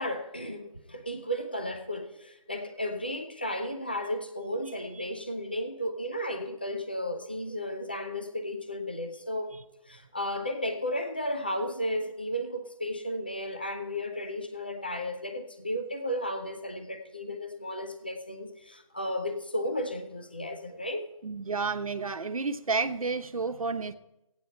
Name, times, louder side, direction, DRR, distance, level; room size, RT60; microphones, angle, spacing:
voice 1, 0.0-9.5 9.9-21.0, equal, 15° left, 0.4 m, -34 dB
voice 2, 21.2-23.9, right 4 dB, 85° right, 1.0 m, -31 dB
15.5 x 9.2 x 4.4 m
figure-of-eight pair, 175°, 18 cm